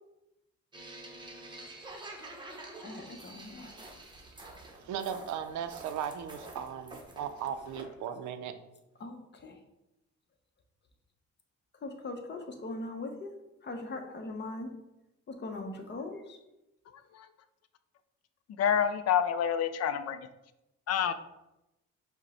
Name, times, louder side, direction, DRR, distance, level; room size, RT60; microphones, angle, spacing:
sound 1, 0.7-7.8, right 2 dB, 15° right, 0.8 m, -48 dB
voice 1, 2.8-3.7 9.0-9.6 11.7-13.4 13.6-14.7 15.3-16.4, left 2 dB, 35° left, 0.8 m, -40 dB
voice 2, 4.8-8.5, right 8 dB, 70° right, 0.5 m, -37 dB
voice 3, 18.6-20.2 20.9-21.1, left 8 dB, 55° left, 0.4 m, -27 dB
5.1 x 2.2 x 4.1 m
cardioid pair, 90°, 30 cm